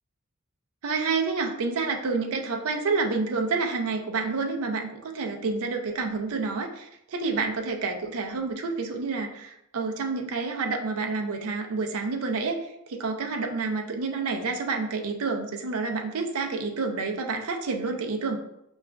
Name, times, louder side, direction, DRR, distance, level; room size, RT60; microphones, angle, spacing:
voice 1, 0.8-18.4, right 4 dB, 70° right, 3 dB, 0.5 m, -29 dB
5.8 x 2.4 x 2.2 m, 0.80 s
head